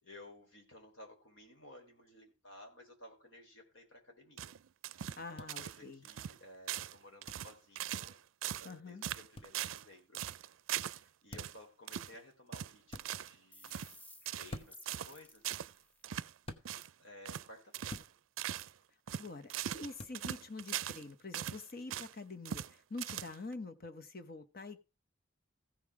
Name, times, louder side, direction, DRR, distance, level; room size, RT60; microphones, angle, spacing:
voice 1, 0.0-4.5 4.9-8.2 8.6-10.2 10.7-13.9 14.3-15.6 16.6-18.1, left 1 dB, 80° left, 3.9 m, -56 dB
sound 1, 4.4-5.2 5.5-5.8 6.0-6.4 6.7-7.0 7.2-8.1 8.4-8.7 9.0-9.9 10.1-11.0 11.4-11.6 11.9-12.1 12.5-13.3 13.6-13.9 14.3-14.6 14.9-15.1 15.4-15.7 16.0-16.3 16.6-16.9 17.3-17.5 17.7-18.1 18.4-18.7 19.1-21.0 21.3-22.1 22.5-22.7 23.0-23.5, right 11 dB, 90° right, 0.4 m, -40 dB
voice 2, 5.2-6.0 8.6-9.0 19.1-24.8, left 3 dB, 50° left, 1.1 m, -46 dB
sound 2, 5.4-5.5 7.3-7.5 9.4-9.5 11.3-11.6 12.9-13.1 14.5-14.9 16.4-16.7 17.9-18.1 20.0-20.2, left 1 dB, 30° left, 0.9 m, -46 dB
sound 3, 13.5-16.0, left 1 dB, 10° left, 0.5 m, -57 dB
15.0 x 5.7 x 4.8 m
head